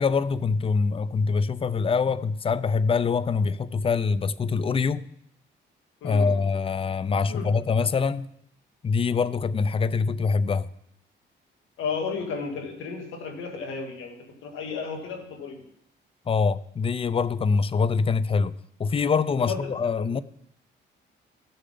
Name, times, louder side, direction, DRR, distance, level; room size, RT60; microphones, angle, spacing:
voice 1, 0.0-5.0 6.0-8.3 8.8-10.7 16.3-18.5 18.8-20.2, left 5 dB, 30° left, 0.5 m, -24 dB
voice 2, 6.0-6.3 7.3-7.5 11.8-14.2 14.4-15.6 19.5-19.7 20.0-20.1, left 5 dB, 85° left, 2.3 m, -33 dB
15.5 x 6.6 x 3.9 m
cardioid pair, 90°, 20 cm